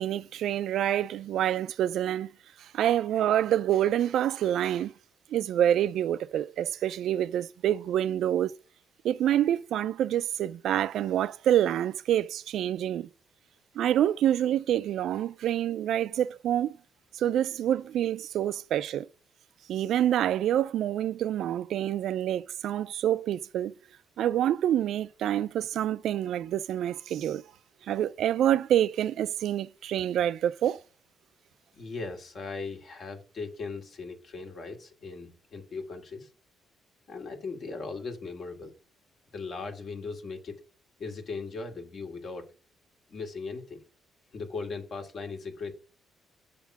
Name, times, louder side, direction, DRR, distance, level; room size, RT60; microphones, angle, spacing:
voice 1, 0.0-2.3 2.6-4.9 5.3-8.5 9.0-13.1 13.8-16.8 17.1-19.1 19.7-23.7 24.2-27.4 27.9-30.8, right 11 dB, 75° right, 0.3 m, -27 dB
voice 2, 31.7-36.3 37.1-38.7 39.3-40.5 41.0-42.5 43.1-43.8 44.3-45.8, left 4 dB, 55° left, 1.7 m, -38 dB
7.3 x 3.5 x 5.9 m
cardioid pair, 90°, 0 cm